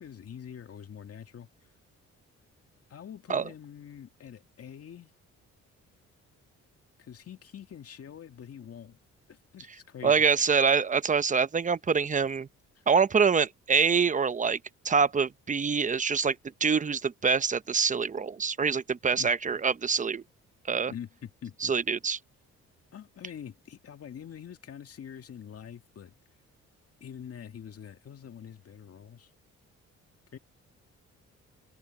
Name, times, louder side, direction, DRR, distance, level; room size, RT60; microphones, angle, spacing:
voice 1, 0.0-1.5 2.9-5.1 7.0-9.0 9.3-10.2 19.1-19.3 20.9-21.7 22.9-26.1 27.0-29.3 30.3-30.4, left 8 dB, 50° left, 2.1 m, -45 dB
voice 2, 10.0-12.5 12.9-14.6 14.8-16.4 16.6-20.2 20.7-20.9 21.6-22.2, right 5 dB, 25° right, 0.8 m, -25 dB
cardioid pair, 90°, 30 cm